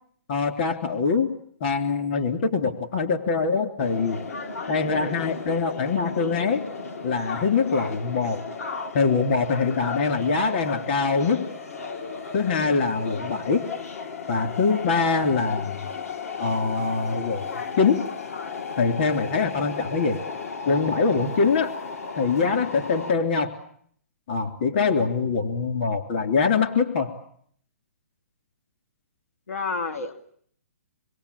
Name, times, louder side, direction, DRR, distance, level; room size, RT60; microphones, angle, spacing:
voice 1, 0.3-1.3 1.6-4.2 4.7-6.6 7.0-8.4 8.9-11.4 12.3-13.7 14.3-15.8 16.4-17.4 17.8-18.0 18.8-20.2 20.7-21.7 22.2-23.5 24.3-27.1, left 4 dB, 45° left, 6 dB, 3.5 m, -23 dB
sound 1, 3.8-23.1, left 4 dB, 70° left, 2.5 m, -35 dB
voice 2, 29.5-30.1, left 4 dB, 90° left, 6 dB, 2.8 m, -30 dB
27.0 x 22.0 x 8.6 m, 0.64 s
hypercardioid pair, 160°, 8 cm